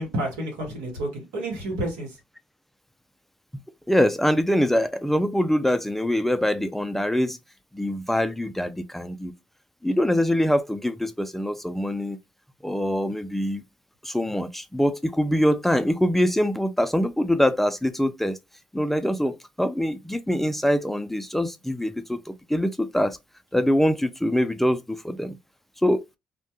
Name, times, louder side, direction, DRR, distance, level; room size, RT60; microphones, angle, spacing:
voice 1, 0.0-2.2, right 1 dB, 80° right, 1.0 m, -30 dB
voice 2, 3.9-7.4 7.7-9.3 9.8-12.2 12.6-13.6 14.0-18.4 18.7-23.2 23.5-25.4 25.8-26.0, equal, 5° left, 0.3 m, -24 dB
2.1 x 2.1 x 2.8 m
hypercardioid pair, 50°, 4 cm